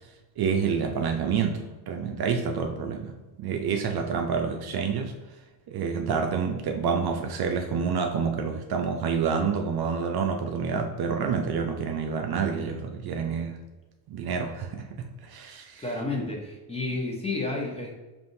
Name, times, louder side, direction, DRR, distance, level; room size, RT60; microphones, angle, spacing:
voice 1, 0.4-5.1 5.7-13.6 14.1-16.0, right 6 dB, 50° right, 4 dB, 0.5 m, -28 dB
voice 2, 15.8-18.0, left 2 dB, 10° left, -1 dB, 0.8 m, -31 dB
5.4 x 2.5 x 2.6 m, 1.1 s
cardioid pair, 110°, 49 cm